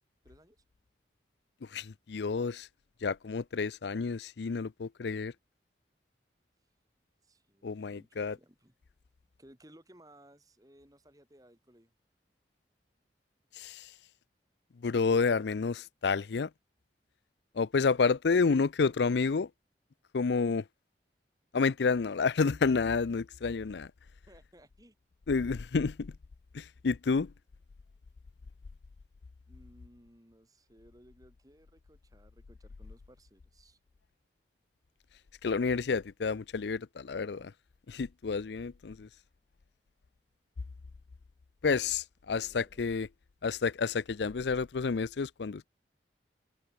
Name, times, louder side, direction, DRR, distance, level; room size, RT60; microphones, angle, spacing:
voice 1, 0.2-0.6 7.2-8.7 9.4-11.9 24.3-25.0 29.5-33.8 42.3-42.8, right 1 dB, 20° right, 4.9 m, -60 dB
voice 2, 1.6-2.7 3.0-5.3 7.6-8.4 13.5-13.9 14.8-16.5 17.5-19.5 20.1-20.6 21.5-23.9 25.3-26.1 26.5-27.3 35.4-37.5 37.9-39.1 41.6-43.1 43.4-45.7, left 4 dB, 75° left, 0.5 m, -30 dB
head